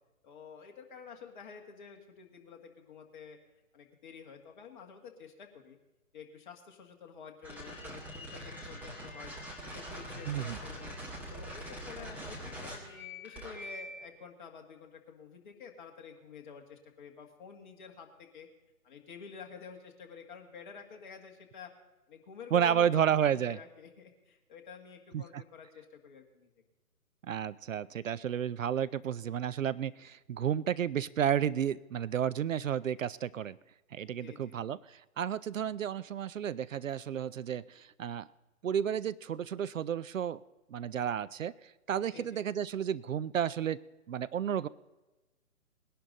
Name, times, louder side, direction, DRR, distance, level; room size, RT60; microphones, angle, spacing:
voice 1, 0.2-3.4 3.7-5.8 6.1-9.3 9.6-11.0 11.3-18.5 18.8-21.7 22.1-26.5 34.2-34.6 42.1-42.4, left 6 dB, 35° left, 2 dB, 1.8 m, -50 dB
sound 1, 7.4-14.1, equal, 5° right, 1.3 m, -43 dB
voice 2, 10.3-10.6 22.5-23.6 25.1-25.4 27.2-33.6 33.9-38.3 38.6-40.4 40.7-43.8 44.1-44.7, right 9 dB, 65° right, 19 dB, 0.5 m, -32 dB
20.5 x 11.0 x 3.8 m, 1.1 s
figure-of-eight pair, 145°, 42 cm